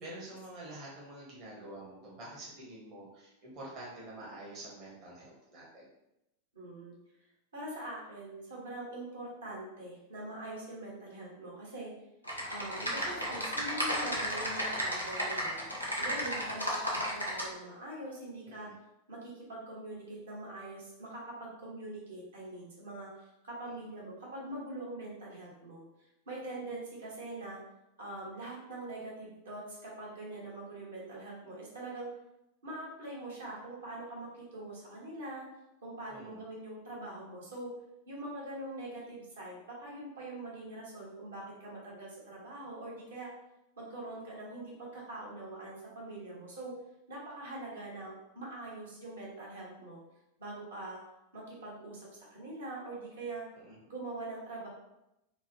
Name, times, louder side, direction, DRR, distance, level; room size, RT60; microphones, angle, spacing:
voice 1, 0.0-5.9 18.5-18.7 23.7-23.8 36.1-36.4 53.6-53.8, right 1 dB, 35° right, -5 dB, 0.8 m, -47 dB
voice 2, 6.5-6.9 7.5-11.9 12.5-15.6 16.0-18.7 19.1-25.8 26.3-27.6 28.0-32.1 32.6-35.5 35.8-37.7 38.1-43.3 43.8-46.7 47.1-50.0 50.4-51.0 51.3-53.4 53.8-54.7, right 2 dB, 70° right, -5 dB, 1.0 m, -43 dB
Typing, 12.2-17.5, equal, 90° right, 0.6 m, -33 dB
2.8 x 2.0 x 2.9 m, 0.88 s
figure-of-eight pair, 90°, 0 cm